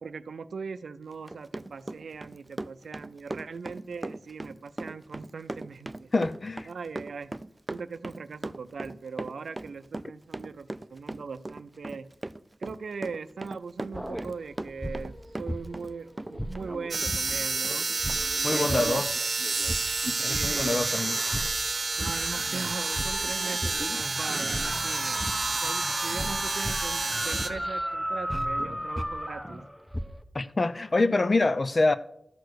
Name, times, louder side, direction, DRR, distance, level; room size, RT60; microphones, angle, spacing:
voice 1, 0.0-6.1 6.7-7.3 7.7-12.1 12.6-17.9 18.5-19.1 20.3-20.9 22.0-25.2 25.6-29.6, right 5 dB, 90° right, 0.5 m, -39 dB
Run, 1.1-17.8 18.1-18.2 18.5-18.6 18.9-19.1, right 2 dB, 30° right, 0.4 m, -39 dB
voice 2, 6.1-6.7 18.4-19.2 20.1-21.2 30.3-32.0, left 2 dB, 50° left, 0.7 m, -26 dB
sound 1, 13.9-16.0 16.3-30.2, equal, ahead, 0.9 m, -35 dB
sound 2, 16.9-27.5, right 3 dB, 65° right, 0.8 m, -30 dB
13.5 x 4.7 x 6.2 m
cardioid pair, 45°, 0 cm